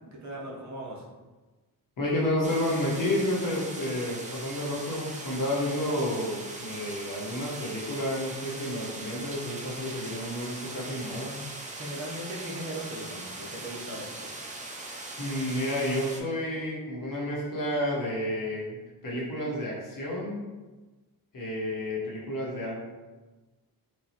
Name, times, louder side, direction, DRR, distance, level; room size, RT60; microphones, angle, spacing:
voice 1, 0.1-1.0 11.8-14.3, right 1 dB, 45° right, -4 dB, 0.9 m, -38 dB
voice 2, 2.0-11.4 15.2-20.5 21.3-22.8, left 1 dB, 55° left, -5 dB, 1.1 m, -30 dB
sound 1, 2.4-16.2, right 2 dB, 20° right, 0.4 m, -40 dB
4.5 x 2.3 x 2.9 m, 1.2 s
wide cardioid pair, 130°, 39 cm